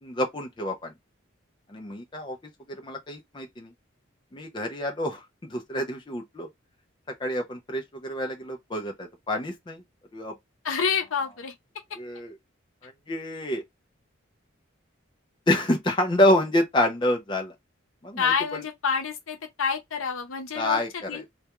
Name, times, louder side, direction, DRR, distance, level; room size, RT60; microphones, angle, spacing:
voice 1, 0.0-0.9 1.7-2.4 2.7-3.7 4.3-6.5 7.1-9.8 10.1-10.4 11.9-12.3 12.8-13.6 15.5-17.5 18.0-18.6 20.5-21.2, left 1 dB, 25° left, 0.4 m, -27 dB
voice 2, 10.6-11.5 18.2-21.3, left 6 dB, 90° left, 0.7 m, -28 dB
2.3 x 2.2 x 2.9 m
head